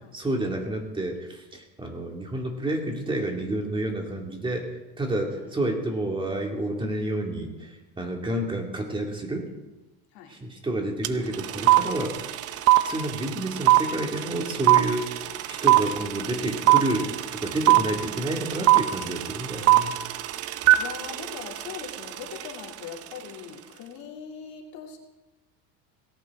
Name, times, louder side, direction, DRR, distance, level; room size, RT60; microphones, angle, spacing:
voice 1, 0.1-9.5 10.3-12.3 12.8-20.0, right 1 dB, 10° right, 1 dB, 2.5 m, -30 dB
voice 2, 5.3-5.9 10.1-10.4 15.1-15.6 20.8-25.0, left 7 dB, 60° left, 0 dB, 3.1 m, -41 dB
sound 1, 11.0-11.1 11.3-22.5, right 16 dB, 35° right, 0.6 m, -20 dB
18.0 x 17.0 x 3.8 m, 1.1 s
cardioid pair, 155°, 41 cm